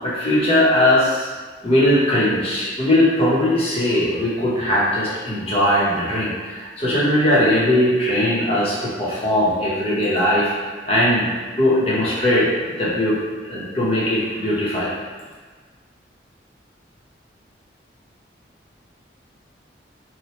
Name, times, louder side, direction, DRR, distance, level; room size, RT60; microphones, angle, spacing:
voice 1, 0.0-1.3 1.6-10.5 10.9-11.3 11.6-12.5 12.8-13.1 13.4-14.9, left 1 dB, 30° left, -8 dB, 0.8 m, -19 dB
3.1 x 2.1 x 4.2 m, 1.5 s
head